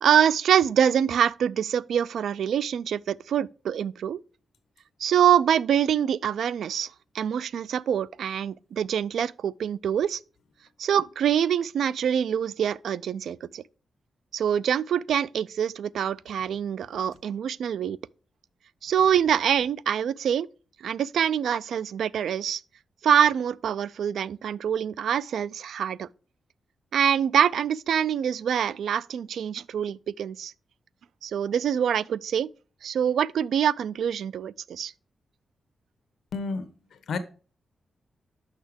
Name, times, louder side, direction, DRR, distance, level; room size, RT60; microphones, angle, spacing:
voice 1, 0.0-4.2 5.0-10.2 10.8-13.6 14.3-18.0 18.8-20.5 20.8-22.6 23.0-26.1 26.9-30.5 31.2-32.5 32.8-34.9, right 9 dB, 85° right, 0.3 m, -25 dB
voice 2, 36.3-37.2, left 4 dB, 75° left, 1.1 m, -32 dB
6.6 x 5.9 x 5.1 m
cardioid pair, 110°, 0 cm